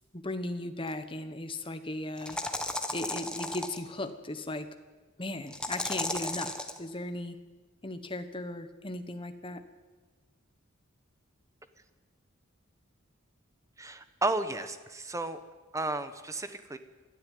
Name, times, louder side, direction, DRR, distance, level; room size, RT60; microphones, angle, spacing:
voice 1, 0.1-2.4 2.9-4.7 5.2-7.4 7.8-9.6, left 1 dB, 25° left, 9 dB, 1.2 m, -37 dB
sound 1, 0.9-1.0 2.2-3.8 5.5-6.8, left 1 dB, 5° left, 1.3 m, -34 dB
voice 2, 13.8-15.4 15.7-16.8, right 2 dB, 15° right, 10 dB, 1.1 m, -33 dB
22.5 x 13.0 x 9.4 m, 1.3 s
head